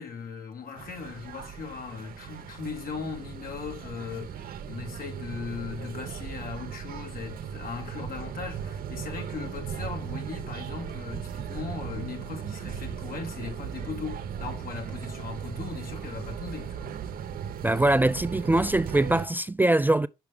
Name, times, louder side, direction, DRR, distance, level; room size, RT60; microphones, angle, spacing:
voice 1, 0.0-16.9, left 5 dB, 65° left, 2.3 m, -38 dB
sound 1, 0.8-19.3, right 8 dB, 70° right, 0.8 m, -37 dB
voice 2, 17.6-20.1, right 1 dB, 10° right, 0.3 m, -22 dB
6.0 x 5.6 x 3.5 m
supercardioid pair, 50°, 16 cm